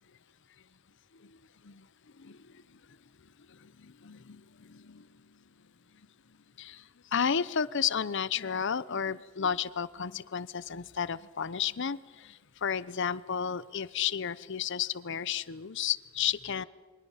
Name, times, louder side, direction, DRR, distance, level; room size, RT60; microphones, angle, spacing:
voice 1, 4.0-4.4 4.7-5.0 6.6-6.8 7.1-12.0 12.6-16.6, left 7 dB, 60° left, 0.7 m, -32 dB
28.5 x 23.5 x 5.7 m
head